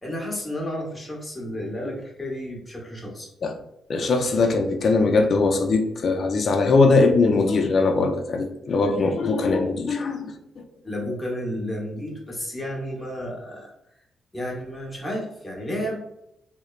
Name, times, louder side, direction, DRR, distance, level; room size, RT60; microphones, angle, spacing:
voice 1, 0.0-3.3 10.8-13.7 14.3-16.0, equal, 15° left, -2 dB, 0.9 m, -32 dB
voice 2, 3.9-10.6, left 3 dB, 50° left, 5 dB, 0.4 m, -21 dB
2.9 x 2.0 x 2.3 m, 0.79 s
cardioid pair, 95°, 0 cm